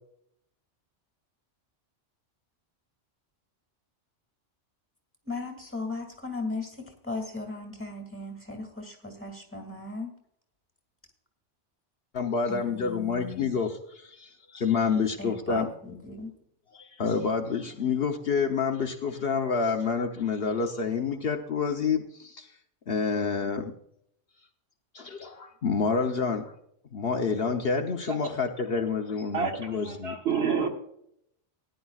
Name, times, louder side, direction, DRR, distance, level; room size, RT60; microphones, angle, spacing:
voice 1, 5.3-6.7 7.0-10.1 12.5-13.6 15.2-16.3, left 3 dB, 10° left, 3 dB, 2.2 m, -36 dB
voice 2, 12.1-15.7 16.7-22.5 22.9-23.7 24.9-26.5 26.9-30.1, left 5 dB, 55° left, 5 dB, 1.0 m, -28 dB
voice 3, 29.3-30.7, right 6 dB, 60° right, 3 dB, 1.6 m, -28 dB
18.0 x 10.5 x 2.4 m, 0.73 s
omnidirectional pair, 1.2 m